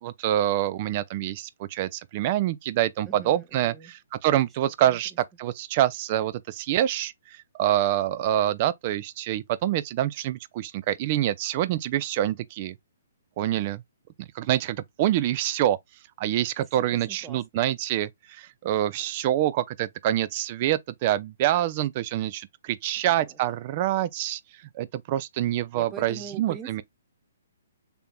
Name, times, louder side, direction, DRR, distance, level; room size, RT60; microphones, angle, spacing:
voice 1, 0.0-5.1 5.4-12.7 13.4-13.8 14.2-15.8 16.2-24.4 24.7-26.8, right 13 dB, 40° right, 0.4 m, -26 dB
voice 2, 3.1-3.9 13.6-13.7 16.9-17.6 23.0-23.6 25.7-26.8, right 6 dB, 20° right, 1.1 m, -43 dB
6.8 x 2.9 x 2.2 m
figure-of-eight pair, 130°, 0 cm